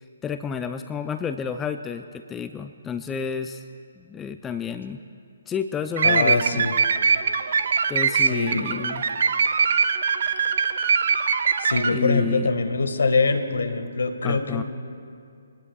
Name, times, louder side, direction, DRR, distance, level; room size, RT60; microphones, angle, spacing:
voice 1, 0.0-3.6 4.0-5.0 5.5-6.7 7.9-9.0 11.9-12.5 14.2-14.6, left 6 dB, 15° left, 8 dB, 0.5 m, -31 dB
voice 2, 6.0-6.7 8.3-8.7 11.6-14.6, left 3 dB, 70° left, 8 dB, 1.6 m, -23 dB
sound 1, 6.0-11.9, right 6 dB, 55° right, 1.0 m, -22 dB
25.5 x 19.0 x 2.4 m, 2.4 s
figure-of-eight pair, 140°, 0 cm